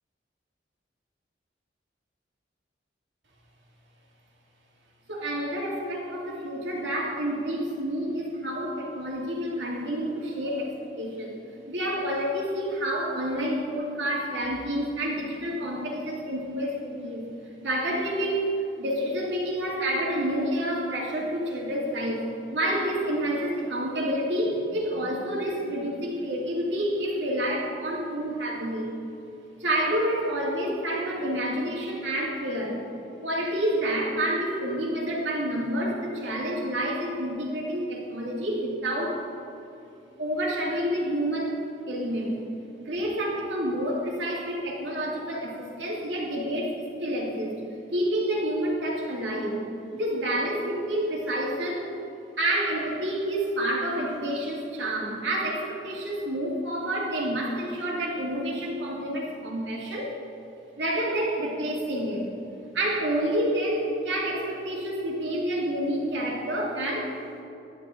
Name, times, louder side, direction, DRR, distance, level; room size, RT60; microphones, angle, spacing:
voice 1, 5.1-17.3 17.6-22.2 22.5-28.9 29.6-32.8 33.2-39.2 40.2-42.4 42.8-47.6 47.9-49.7 49.9-51.9 52.4-60.1 60.8-62.3 62.7-67.1, right 1 dB, 90° right, -3 dB, 2.5 m, -29 dB
11.5 x 11.0 x 3.8 m, 2.8 s
head